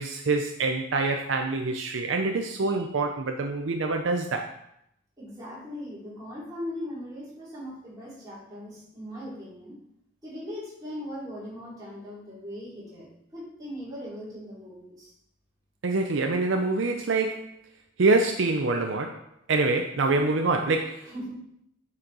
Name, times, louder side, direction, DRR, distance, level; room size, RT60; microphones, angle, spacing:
voice 1, 0.0-4.5 15.8-17.5 18.0-19.2 19.5-21.1, right 3 dB, 65° right, 4 dB, 0.5 m, -25 dB
voice 2, 5.2-9.8 10.2-13.1 13.3-15.1 21.1-21.3, equal, 20° right, -7 dB, 2.7 m, -39 dB
8.1 x 4.3 x 3.9 m, 0.76 s
head